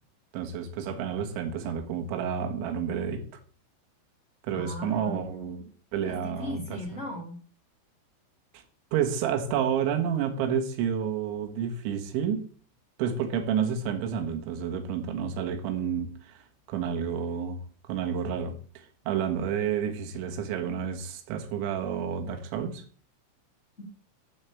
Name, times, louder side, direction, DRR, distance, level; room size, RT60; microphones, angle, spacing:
voice 1, 0.3-3.3 4.4-5.6 5.9-6.8 8.5-8.6 8.9-12.4 13.0-22.8, right 8 dB, 75° right, 3.7 m, -30 dB
voice 2, 4.5-5.7 6.0-7.4 23.8-23.9, left 1 dB, 35° left, 1.1 m, -38 dB
13.0 x 4.5 x 7.0 m
omnidirectional pair, 5.7 m